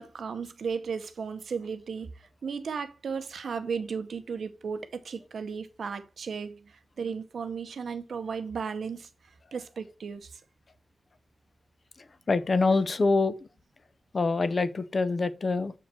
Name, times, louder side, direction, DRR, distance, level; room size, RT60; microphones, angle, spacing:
voice 1, 0.0-9.1 9.5-10.4, right 6 dB, 75° right, 0.8 m, -35 dB
voice 2, 12.3-13.4 14.1-15.7, left 3 dB, 40° left, 0.5 m, -25 dB
7.2 x 4.6 x 4.2 m
wide cardioid pair, 155°, 0 cm